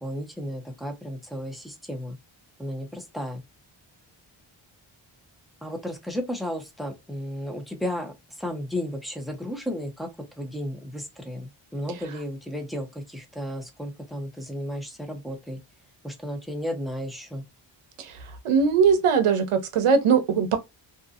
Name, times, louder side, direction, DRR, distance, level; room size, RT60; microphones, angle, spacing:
voice 1, 0.0-2.2 2.6-3.4 5.6-10.1 10.4-15.6 16.0-17.4, equal, ahead, 0.6 m, -33 dB
voice 2, 18.4-20.6, right 6 dB, 90° right, 0.7 m, -20 dB
2.6 x 2.6 x 2.4 m
wide cardioid pair, 95°, 49 cm